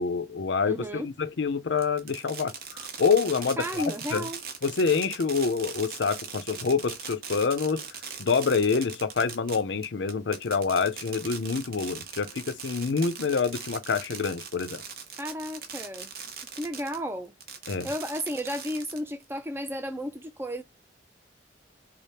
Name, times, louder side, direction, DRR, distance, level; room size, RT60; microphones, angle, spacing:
voice 1, 0.0-3.8 4.1-4.2 4.6-7.8 8.2-14.8 17.7-17.9, left 5 dB, 70° left, 0.5 m, -27 dB
voice 2, 0.6-1.1 3.6-4.4 15.2-16.1 16.6-17.3 17.8-20.6, equal, 15° right, 0.4 m, -33 dB
Fireworks, 1.8-17.0 17.4-19.2, right 6 dB, 50° right, 0.7 m, -40 dB
3.4 x 2.0 x 4.2 m
head